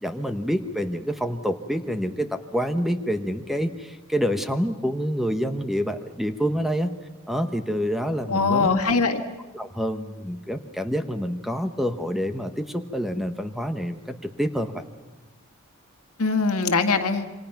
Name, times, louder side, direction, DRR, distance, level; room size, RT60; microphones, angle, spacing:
voice 1, 0.0-6.9 7.3-8.7 9.5-14.8, equal, ahead, 7 dB, 1.0 m, -27 dB
voice 2, 8.3-9.2 16.2-17.3, left 4 dB, 90° left, 5 dB, 1.9 m, -21 dB
28.0 x 25.5 x 5.9 m, 1.2 s
head